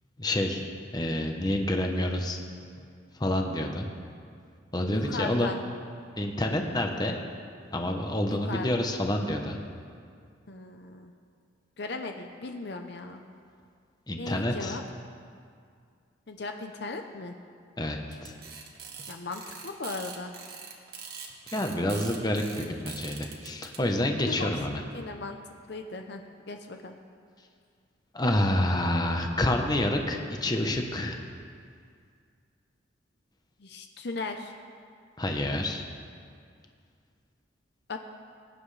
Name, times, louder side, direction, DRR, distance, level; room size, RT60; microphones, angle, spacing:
voice 1, 0.2-0.6 0.9-2.4 3.2-3.9 4.7-5.5 6.2-7.2 7.7-9.6 14.1-14.8 17.8-18.3 21.5-24.8 28.1-31.2 35.2-35.8, left 1 dB, 20° left, 3 dB, 1.0 m, -28 dB
voice 2, 4.9-5.6 8.3-8.7 10.5-11.1 11.8-13.2 14.2-14.8 16.3-17.4 19.1-20.4 24.3-24.5 24.9-27.0 33.6-34.5 37.9-38.0, left 3 dB, 60° left, 5 dB, 0.7 m, -37 dB
sound 1, 18.1-23.8, right 6 dB, 55° right, 1.5 m, -43 dB
22.0 x 9.7 x 3.3 m, 2.2 s
head